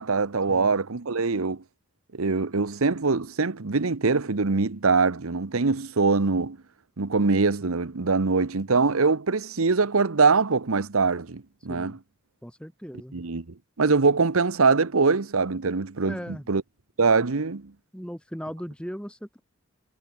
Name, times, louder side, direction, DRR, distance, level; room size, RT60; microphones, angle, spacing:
voice 1, 0.0-1.6 2.1-6.6 7.0-12.0 13.1-13.4 13.8-16.1 16.5-16.6 17.0-17.7, right 4 dB, 90° right, 1.0 m, -23 dB
voice 2, 12.4-13.2 16.0-16.5 17.9-19.4, equal, 5° left, 6.9 m, -38 dB
head